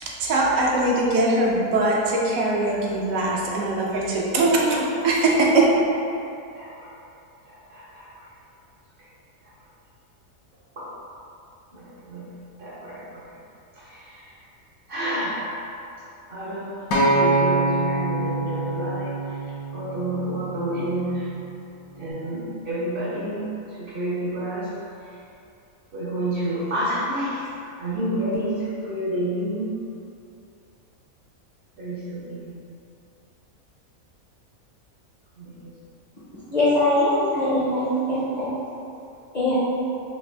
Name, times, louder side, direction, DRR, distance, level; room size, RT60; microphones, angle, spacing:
voice 1, 0.0-5.7, right 2 dB, 75° right, -3 dB, 1.0 m, -21 dB
voice 2, 6.5-6.9 7.4-8.3 9.0-9.1 9.4-9.5 10.8-10.9 11.7-12.3 12.6-13.2 13.7-14.4 14.9-15.6 16.3-19.5 19.7-21.3 21.9-24.7 25.0-25.2 25.9-27.5 27.8-29.7 31.8-32.6 35.4-35.8, right 1 dB, 55° right, -8 dB, 0.7 m, -30 dB
Acoustic guitar, 16.9-21.2 22.0-22.1, right 2 dB, 85° left, 1.1 m, -25 dB
voice 3, 36.5-38.5 39.3-39.6, left 1 dB, 50° left, -11 dB, 0.5 m, -22 dB
3.4 x 2.5 x 3.2 m, 2.6 s
omnidirectional pair, 1.5 m